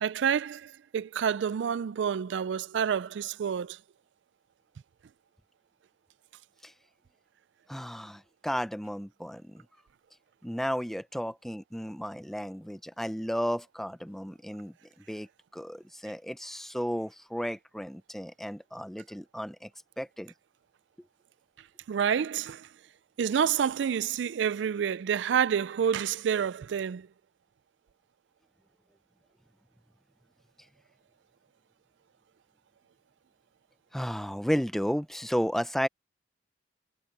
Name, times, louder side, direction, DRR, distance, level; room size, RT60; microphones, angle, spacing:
voice 1, 0.0-3.8 21.9-22.7 23.2-27.1, right 8 dB, 80° right, 0.4 m, -28 dB
voice 2, 7.7-9.7 10.4-14.7 15.1-15.3 15.5-19.7 20.0-20.3 33.9-35.9, equal, ahead, 0.7 m, -33 dB
head